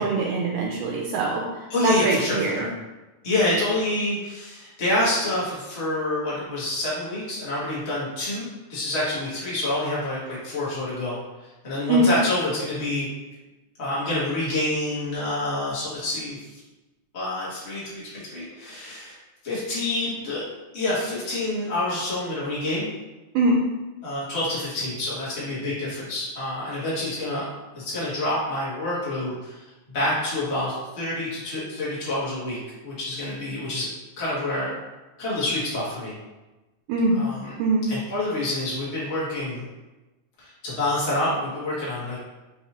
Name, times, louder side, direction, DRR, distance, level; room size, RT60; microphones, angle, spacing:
voice 1, 0.0-1.5 1.8-2.7 11.9-12.1 23.4-23.6 36.9-37.2 37.6-37.9, right 2 dB, 90° right, -1 dB, 2.1 m, -22 dB
voice 2, 1.7-2.7 3.2-8.4 8.7-11.2 11.6-13.1 13.8-16.4 17.1-19.1 19.4-20.4 20.7-22.9 24.0-27.5 27.7-29.6 29.9-32.6 32.8-33.9 34.2-34.7 35.2-36.1 37.1-37.5 37.9-39.6 40.4-42.2, left 1 dB, 90° left, -9 dB, 0.5 m, -27 dB
5.1 x 2.8 x 3.0 m, 1.1 s
omnidirectional pair, 3.6 m